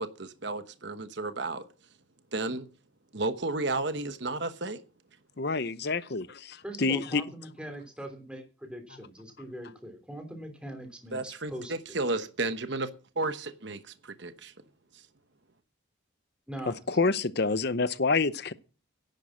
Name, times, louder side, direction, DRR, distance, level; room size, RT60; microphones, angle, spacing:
voice 1, 0.0-1.7 2.3-2.7 3.1-4.8 11.1-12.9 13.2-14.5 14.9-15.0, right 2 dB, 55° right, 1.1 m, -33 dB
voice 2, 5.4-7.2 16.7-18.5, left 4 dB, 50° left, 0.7 m, -28 dB
voice 3, 6.6-12.0 16.5-16.7, right 1 dB, 5° right, 3.1 m, -42 dB
11.0 x 9.3 x 7.4 m
head